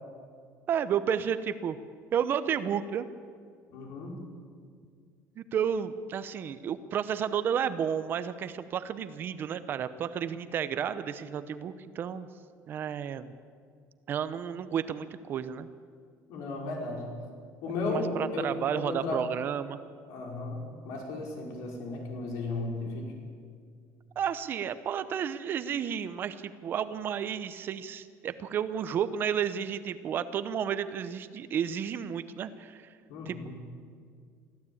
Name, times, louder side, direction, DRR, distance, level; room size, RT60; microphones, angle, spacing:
voice 1, 0.7-1.8 2.1-3.1 5.4-12.3 12.7-13.3 14.1-15.7 17.9-19.8 24.2-32.9 33.3-33.4, right 8 dB, 35° right, 13 dB, 0.8 m, -32 dB
voice 2, 3.7-4.2 16.3-17.1 17.6-19.2 20.1-23.1 33.1-33.5, left 2 dB, 65° left, 1 dB, 5.3 m, -35 dB
23.0 x 15.0 x 8.7 m, 2.1 s
cardioid pair, 165°, 6 cm